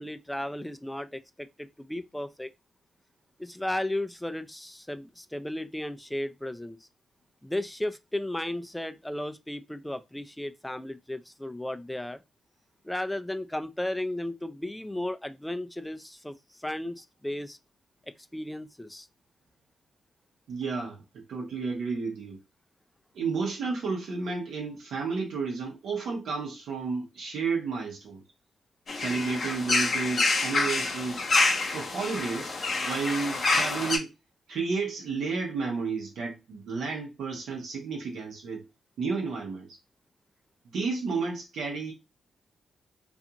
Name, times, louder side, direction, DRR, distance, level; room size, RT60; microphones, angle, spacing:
voice 1, 0.0-2.5 3.4-6.8 7.4-12.2 12.8-17.6 18.3-19.1, left 1 dB, 10° left, 0.3 m, -34 dB
voice 2, 20.5-22.4 23.1-28.2 28.9-31.2 31.7-32.5 32.8-34.1 34.5-38.6 39.0-39.8 40.7-41.9, right 4 dB, 80° right, 0.8 m, -32 dB
sound 1, 28.9-34.0, left 3 dB, 55° left, 0.7 m, -27 dB
2.4 x 2.4 x 2.7 m
supercardioid pair, 55°, 0 cm